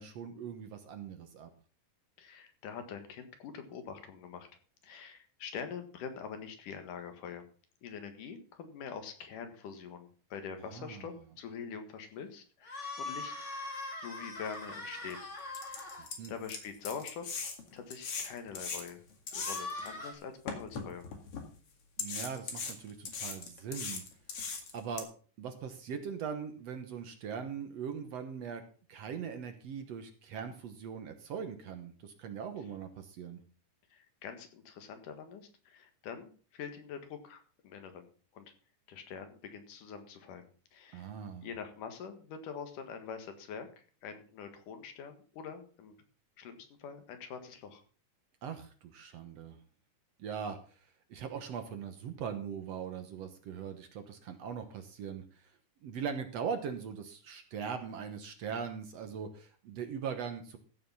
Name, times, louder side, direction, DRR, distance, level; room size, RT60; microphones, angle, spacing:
voice 1, 0.0-1.5 10.7-11.0 16.2-16.3 22.0-24.0 24.7-25.1 25.4-28.6 28.9-33.4 40.9-41.5 48.4-49.6 50.2-50.6 51.1-55.5 55.8-60.6, right 7 dB, 65° right, 8 dB, 1.9 m, -40 dB
voice 2, 2.2-4.5 4.8-7.5 7.8-13.3 14.0-15.3 15.6-16.0 16.3-17.3 17.7-21.0 33.9-38.1 38.3-38.5 38.9-41.1 41.4-43.7 44.0-45.9 46.4-47.8, left 6 dB, 75° left, 7 dB, 3.1 m, -45 dB
sound 1, 12.6-16.1 19.3-20.1, left 2 dB, 25° left, 2.7 m, -41 dB
sound 2, 14.5-14.6 15.1-15.2 15.5-19.9 20.5-21.4 22.0-25.0, left 5 dB, 50° left, 2.7 m, -39 dB
14.5 x 6.8 x 5.4 m, 0.40 s
omnidirectional pair, 3.7 m